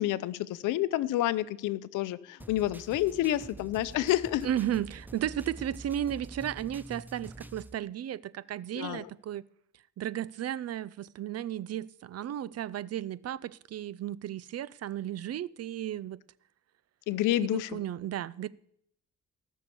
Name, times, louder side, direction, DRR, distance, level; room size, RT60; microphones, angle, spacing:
voice 1, 0.0-4.5 8.7-9.1 17.1-17.8, left 14 dB, 90° left, 0.7 m, -29 dB
sound 1, 2.4-7.8, right 2 dB, 5° right, 0.6 m, -46 dB
voice 2, 4.4-9.4 10.0-16.2 17.4-18.5, right 11 dB, 55° right, 0.6 m, -34 dB
17.5 x 6.5 x 7.0 m
cardioid pair, 90°, 30 cm